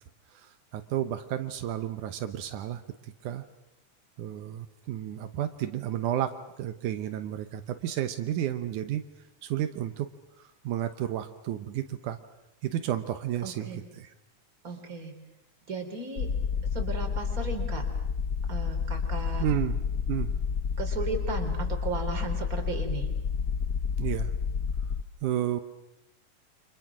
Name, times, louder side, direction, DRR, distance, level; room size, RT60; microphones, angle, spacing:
voice 1, 0.3-3.4 4.2-9.0 9.4-10.1 10.4-12.2 12.6-14.1 19.4-19.8 20.1-20.3 24.0-24.3 25.2-25.6, right 11 dB, 85° right, 9 dB, 2.5 m, -32 dB
voice 2, 13.4-13.8 14.6-15.1 15.7-16.3 16.7-17.8 18.5-19.5 20.8-23.1, right 4 dB, 25° right, 3 dB, 4.0 m, -35 dB
sound 1, 16.2-25.0, left 6 dB, 70° left, 0.8 m, -30 dB
29.5 x 25.5 x 6.1 m, 0.87 s
omnidirectional pair, 3.5 m